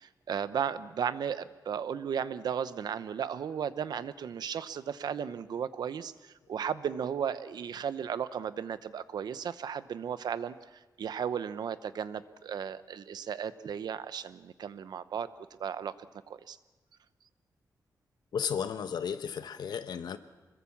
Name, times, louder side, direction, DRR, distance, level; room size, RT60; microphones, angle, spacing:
voice 1, 0.0-10.6 11.0-15.3 15.6-15.9 16.3-16.6, right 8 dB, 85° right, 0.9 m, -35 dB
voice 2, 18.3-20.2, left 7 dB, 80° left, 1.2 m, -34 dB
25.5 x 22.0 x 7.2 m
wide cardioid pair, 175°, 7 cm